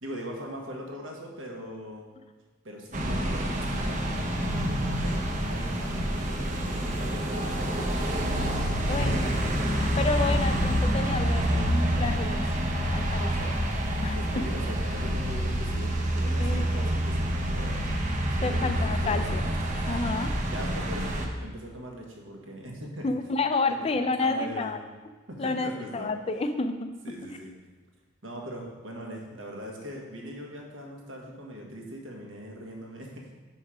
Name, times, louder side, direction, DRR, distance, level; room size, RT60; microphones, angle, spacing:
voice 1, 0.0-2.1 2.6-9.1 14.1-17.8 18.4-19.5 20.5-23.1 23.7-23.8 24.2-24.7 25.3-26.1 27.0-27.5 28.2-33.3, equal, 65° right, 0 dB, 1.4 m, -41 dB
sound 1, 2.9-21.3, equal, 35° right, 0.7 m, -27 dB
voice 2, 8.9-12.4 12.9-13.6 14.0-14.4 16.4-16.9 18.4-19.4 19.9-20.3 23.0-24.8 25.4-26.9, left 3 dB, 30° left, 8 dB, 0.4 m, -30 dB
5.8 x 5.4 x 5.0 m, 1.3 s
head